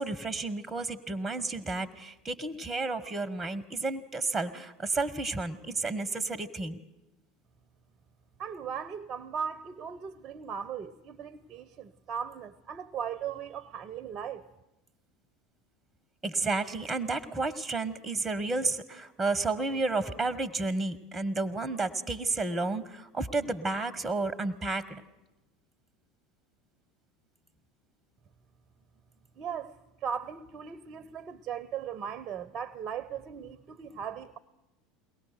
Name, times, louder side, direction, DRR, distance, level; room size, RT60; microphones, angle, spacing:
voice 1, 0.0-6.8 16.2-25.0, right 3 dB, 10° right, 1.1 m, -31 dB
voice 2, 8.4-14.5 29.4-29.7 30.0-34.4, right 7 dB, 35° right, 0.7 m, -38 dB
22.5 x 18.5 x 6.7 m
figure-of-eight pair, 75°, 0 cm